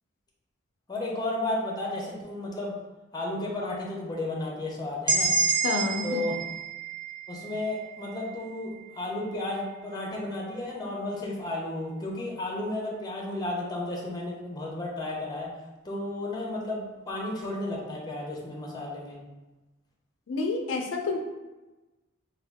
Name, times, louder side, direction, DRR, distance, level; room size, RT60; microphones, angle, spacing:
voice 1, 0.9-2.7 3.1-5.3 6.0-6.4 7.3-15.5 15.8-19.2, left 2 dB, 20° left, -3 dB, 0.6 m, -33 dB
sound 1, 5.1-8.9, right 4 dB, 25° right, 0.7 m, -29 dB
voice 2, 5.6-6.3 20.3-21.2, left 3 dB, 75° left, 2 dB, 0.4 m, -29 dB
3.5 x 2.3 x 3.4 m, 1.1 s
head